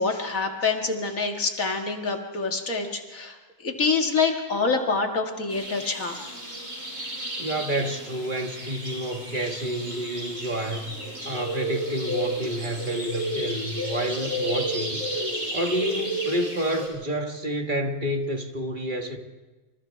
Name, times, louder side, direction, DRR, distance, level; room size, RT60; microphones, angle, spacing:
voice 1, 0.0-6.2, left 4 dB, 80° left, 2.5 m, -26 dB
sound 1, 5.5-16.9, right 1 dB, 65° right, 7.0 m, -32 dB
voice 2, 7.4-11.0 11.2-15.0 15.5-19.2, right 1 dB, 40° right, 1.7 m, -29 dB
27.5 x 27.0 x 3.5 m
omnidirectional pair, 1.4 m